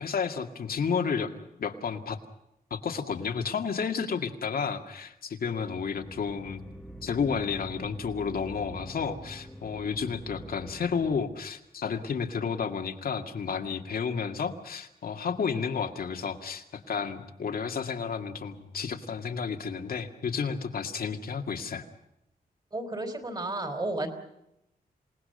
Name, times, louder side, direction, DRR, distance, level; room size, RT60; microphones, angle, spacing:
voice 1, 0.0-1.3 1.6-2.2 2.7-6.6 7.0-21.8, left 6 dB, 70° left, 5 dB, 2.1 m, -31 dB
sound 1, 5.9-11.3, equal, 5° left, 1.3 m, -45 dB
voice 2, 22.7-24.1, right 2 dB, 25° right, 8 dB, 3.6 m, -32 dB
27.5 x 19.0 x 6.6 m, 0.83 s
wide cardioid pair, 135°, 16 cm